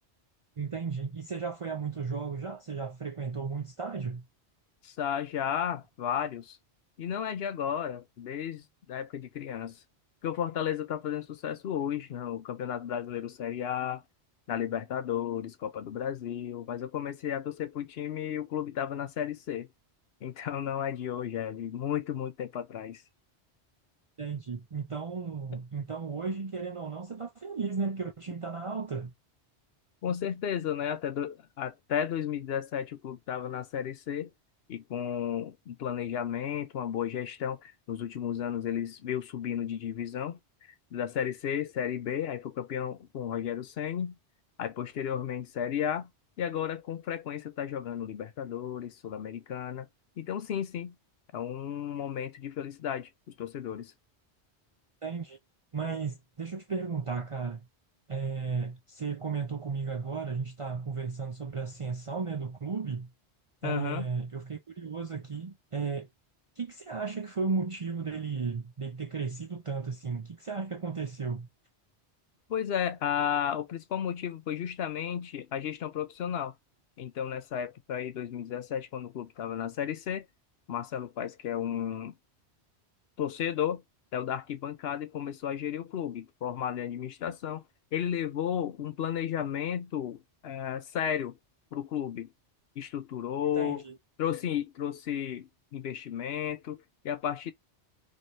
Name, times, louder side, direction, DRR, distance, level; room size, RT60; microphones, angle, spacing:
voice 1, 0.6-4.2 24.2-29.1 55.0-55.4 55.7-57.6 58.1-63.1 63.6-66.1 66.6-71.5 93.6-93.9, right 5 dB, 40° right, 0.5 m, -34 dB
voice 2, 4.8-6.6 7.0-9.8 10.2-14.0 14.5-19.7 20.2-23.0 30.0-34.3 34.7-40.4 40.9-44.2 44.6-46.1 46.4-49.9 50.2-50.9 51.3-53.9 63.6-64.1 72.5-76.5 77.0-80.3 80.7-82.1 83.2-83.8 84.1-87.6 87.9-91.4 91.7-92.3 92.8-93.8 94.2-97.5, left 9 dB, 65° left, 0.8 m, -33 dB
3.1 x 3.0 x 2.6 m
omnidirectional pair, 1.1 m